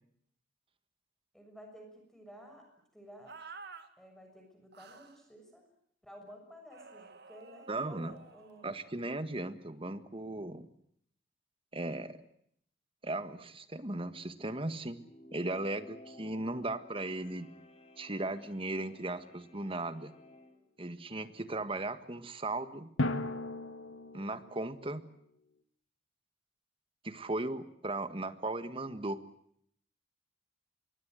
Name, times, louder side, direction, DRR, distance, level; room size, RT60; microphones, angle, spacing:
voice 1, 1.3-2.7 2.9-3.4 4.0-5.6 6.0-8.8, equal, ahead, 4 dB, 6.5 m, -53 dB
sound 1, 3.3-3.9 4.7-5.2 6.7-9.0, right 4 dB, 60° right, 2.1 m, -51 dB
voice 2, 7.7-8.1 8.6-10.7 11.7-12.2 13.0-15.0 15.3-17.5 18.0-20.1 20.8-22.9 24.1-25.0 27.0-29.2, right 2 dB, 30° right, 11 dB, 1.7 m, -37 dB
sound 2, 14.9-20.6, left 1 dB, 35° left, 3.3 m, -55 dB
Drum, 23.0-24.8, left 2 dB, 80° left, 1.8 m, -35 dB
26.0 x 23.5 x 7.7 m, 0.69 s
head